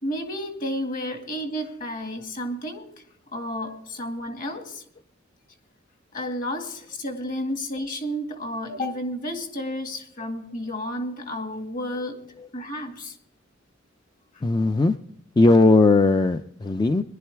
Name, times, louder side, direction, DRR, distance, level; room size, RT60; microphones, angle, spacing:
voice 1, 0.0-2.9 3.3-4.8 6.1-12.2 12.5-13.2, equal, 45° left, 5 dB, 2.0 m, -31 dB
voice 2, 14.4-14.9 15.4-17.0, left 2 dB, 20° left, 9 dB, 0.4 m, -18 dB
20.5 x 11.5 x 3.4 m, 0.67 s
head